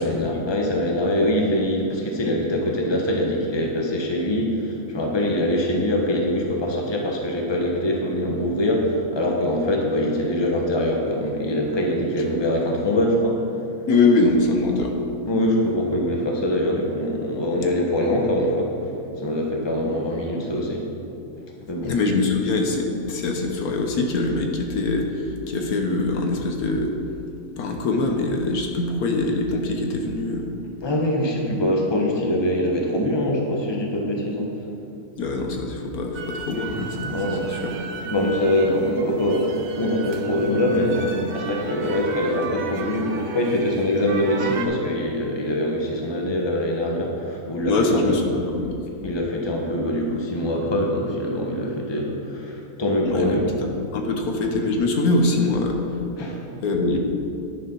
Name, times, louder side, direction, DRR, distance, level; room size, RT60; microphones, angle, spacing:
voice 1, 0.0-13.4 15.3-18.7 19.2-20.8 21.7-21.9 30.8-34.5 37.1-37.4 38.1-48.2 49.0-53.5 56.2-56.4, left 1 dB, 20° left, 0 dB, 1.1 m, -23 dB
voice 2, 13.9-14.9 21.8-25.1 25.5-26.9 27.6-30.5 35.2-37.1 37.5-37.7 47.7-48.8 53.0-55.8 56.6-57.0, left 3 dB, 75° left, 2 dB, 1.4 m, -23 dB
sound 1, 36.1-44.7, right 4 dB, 65° right, 1.2 m, -33 dB
10.0 x 6.7 x 5.4 m, 2.7 s
omnidirectional pair, 1.6 m